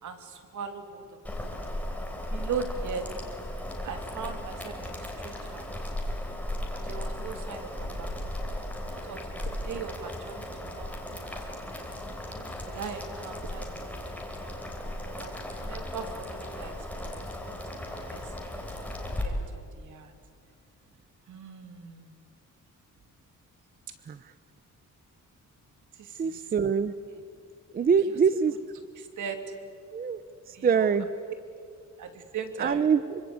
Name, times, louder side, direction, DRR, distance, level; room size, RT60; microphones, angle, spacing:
voice 1, 0.0-1.0 2.3-3.1 3.8-5.7 6.7-8.1 8.9-11.7 12.6-14.0 15.0-18.3 18.8-18.9 19.2-20.1 21.3-22.1 26.0-26.5 27.8-28.2 29.0-29.4 30.5-30.9 31.3-31.4 32.0-32.9, right 6 dB, 70° right, 6 dB, 2.9 m, -39 dB
Boiling, 1.2-19.2, left 1 dB, 5° left, 3.5 m, -36 dB
voice 2, 26.2-26.9 27.7-28.6 29.9-30.2 30.6-31.1 32.6-33.2, right 6 dB, 30° right, 13 dB, 0.6 m, -24 dB
26.5 x 24.5 x 8.5 m, 2.3 s
wide cardioid pair, 180°, 32 cm